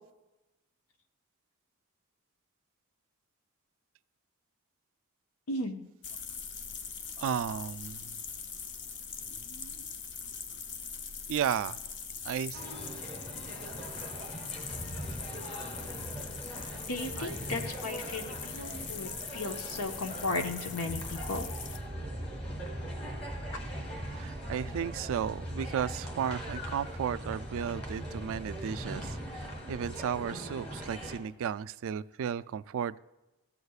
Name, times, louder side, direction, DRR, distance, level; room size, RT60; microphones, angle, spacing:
voice 1, 5.5-5.8 16.9-21.5, left 2 dB, 80° left, 5 dB, 1.1 m, -35 dB
sound 1, 6.0-21.8, left 6 dB, 55° left, 0.7 m, -42 dB
voice 2, 7.2-8.2 11.3-11.8 12.2-12.6 16.6-16.8 17.2-17.4 24.1-33.0, right 8 dB, 65° right, 16 dB, 0.3 m, -34 dB
sound 2, 12.5-31.2, equal, 30° left, 2.1 m, -42 dB
sound 3, 20.9-31.0, right 1 dB, 5° left, 0.8 m, -42 dB
15.0 x 8.0 x 2.4 m, 1.0 s
head